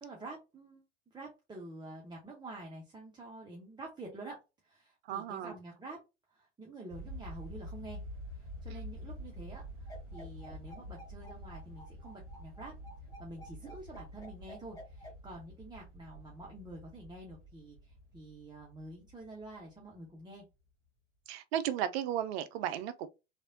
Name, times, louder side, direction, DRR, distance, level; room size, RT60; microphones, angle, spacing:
voice 1, 0.0-6.0 6.3-8.0 8.3-12.7 13.2-20.4, right 2 dB, 10° right, 0.8 m, -48 dB
voice 2, 5.1-5.5 21.3-23.1, right 10 dB, 55° right, 0.5 m, -34 dB
sound 1, 6.9-20.2, equal, 35° right, 1.5 m, -48 dB
sound 2, 9.9-15.1, equal, 10° left, 1.7 m, -52 dB
3.2 x 2.6 x 2.6 m
figure-of-eight pair, 75°, 37 cm